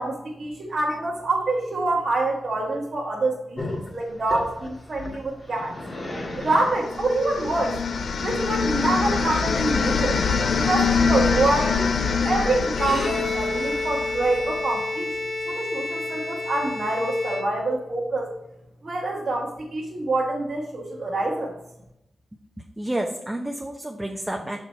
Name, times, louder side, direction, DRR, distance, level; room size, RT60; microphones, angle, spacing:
voice 1, 0.0-5.7 6.3-7.8 8.2-10.2 10.5-11.9 12.2-15.2 15.5-18.3 18.8-21.5, right 2 dB, 55° right, -4 dB, 1.4 m, -26 dB
Growling, 3.6-9.4, left 1 dB, 40° left, 1.9 m, -36 dB
sound 1, 6.6-14.6, left 5 dB, 70° left, 0.5 m, -25 dB
Bowed string instrument, 12.7-17.9, left 2 dB, 90° left, 2.0 m, -30 dB
voice 2, 22.6-24.6, right 1 dB, 15° right, 1 dB, 0.8 m, -30 dB
6.0 x 4.7 x 4.4 m, 0.83 s
cardioid pair, 50°, 0 cm